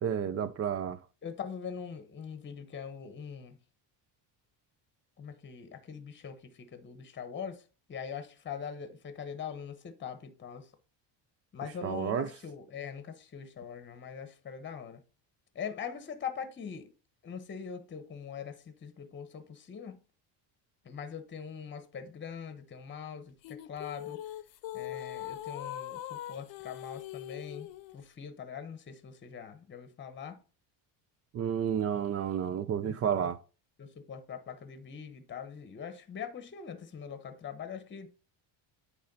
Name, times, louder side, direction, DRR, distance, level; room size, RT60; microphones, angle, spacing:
voice 1, 0.0-1.0 11.8-12.3 31.3-33.4, right 8 dB, 30° right, 0.5 m, -31 dB
voice 2, 1.2-3.6 5.2-7.6 7.9-10.7 11.5-15.0 15.5-16.9 17.2-20.0 20.8-24.2 24.7-27.7 27.9-30.4 32.8-33.3 33.8-38.1, left 7 dB, 25° left, 1.0 m, -42 dB
sound 1, 23.4-28.0, left 13 dB, 65° left, 0.8 m, -41 dB
8.5 x 3.3 x 5.3 m
cardioid pair, 135°, 47 cm